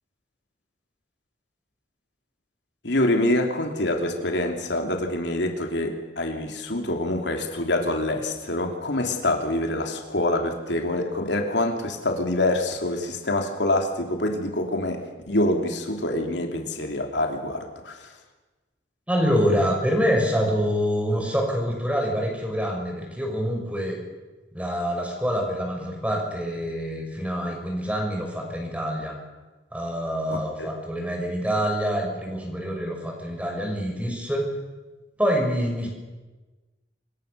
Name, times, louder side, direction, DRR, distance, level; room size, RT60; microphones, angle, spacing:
voice 1, 2.8-18.1 30.3-30.7, left 1 dB, 80° left, 3 dB, 3.1 m, -26 dB
voice 2, 19.1-24.0 24.5-29.1 29.7-34.5 35.2-35.9, equal, 10° right, 1 dB, 6.1 m, -26 dB
26.0 x 23.0 x 6.9 m, 1.2 s
head